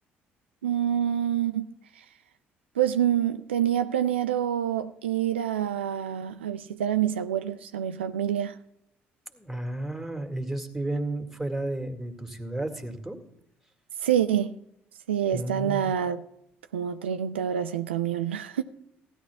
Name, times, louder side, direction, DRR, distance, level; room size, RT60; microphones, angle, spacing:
voice 1, 0.6-1.7 2.8-8.6 14.0-14.6 15.1-16.2 16.7-18.6, right 10 dB, 85° right, 0.4 m, -27 dB
voice 2, 9.3-13.2 15.3-15.9, right 1 dB, 5° right, 2.0 m, -32 dB
15.5 x 11.0 x 3.5 m
hypercardioid pair, 50°, 6 cm